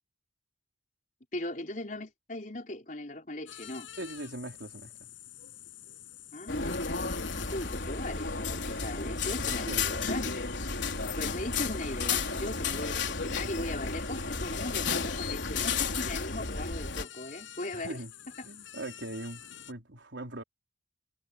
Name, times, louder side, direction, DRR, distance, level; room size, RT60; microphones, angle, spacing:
voice 1, 1.3-3.9 6.3-7.2 7.5-10.5 11.2-18.0 18.4-18.5, left 1 dB, 45° left, 4.7 m, -38 dB
sound 1, 3.5-19.7, left 8 dB, 85° left, 6.5 m, -48 dB
voice 2, 4.0-4.9 8.7-8.8 9.6-10.1 17.7-18.1 18.4-19.4 19.7-20.4, right 1 dB, 75° right, 3.7 m, -40 dB
sound 2, 6.5-17.0, left 4 dB, 70° left, 3.8 m, -33 dB
head